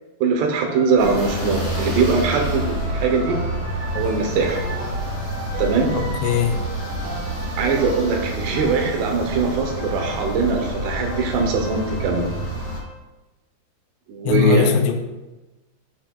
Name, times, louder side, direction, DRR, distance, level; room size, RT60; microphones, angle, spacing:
voice 1, 0.2-3.4 4.0-4.6 5.6-5.9 7.6-12.3 14.1-14.7, right 4 dB, 80° right, 3 dB, 2.9 m, -21 dB
sound 1, 0.6-12.9, right 1 dB, 55° right, 2.9 m, -36 dB
sound 2, 1.0-12.8, equal, 25° right, 1.1 m, -28 dB
voice 2, 5.9-6.6 14.2-14.9, left 7 dB, 90° left, 6 dB, 2.8 m, -20 dB
8.6 x 6.0 x 2.3 m, 1.1 s
omnidirectional pair, 4.9 m